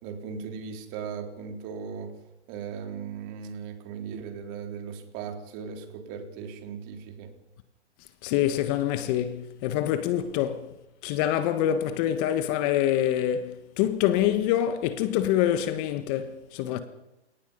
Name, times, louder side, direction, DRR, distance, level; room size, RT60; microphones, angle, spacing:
voice 1, 0.0-2.1 2.5-7.3, right 6 dB, 35° right, 3.7 m, -38 dB
voice 2, 8.2-10.7 11.0-16.8, left 11 dB, 35° left, 1.4 m, -26 dB
29.0 x 18.0 x 5.5 m
hypercardioid pair, 135°, 34 cm